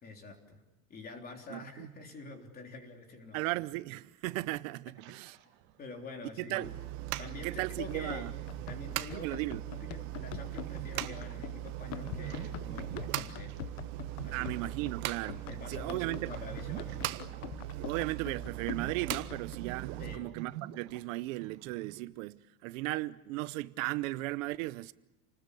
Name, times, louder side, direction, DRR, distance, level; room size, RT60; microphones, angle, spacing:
voice 1, 0.0-0.6 0.9-3.4 5.8-6.7 7.2-8.3 8.7-9.4 9.7-13.6 14.2-14.5 15.5-17.0 20.0-20.3, left 3 dB, 20° left, 3.5 m, -46 dB
voice 2, 1.5-1.9 3.3-5.4 6.4-6.7 7.4-8.3 9.1-9.6 14.3-15.4 15.7-16.3 17.8-24.9, right 19 dB, 65° right, 0.8 m, -36 dB
sound 1, 5.0-6.1 6.8-8.1 8.5-11.4 11.7-18.4 18.6-22.0, right 13 dB, 45° right, 2.2 m, -48 dB
sound 2, 6.6-20.2, right 15 dB, 80° right, 1.5 m, -40 dB
Run, 7.9-19.6, left 15 dB, 60° left, 0.8 m, -45 dB
29.0 x 20.0 x 8.4 m
cardioid pair, 180°, 43 cm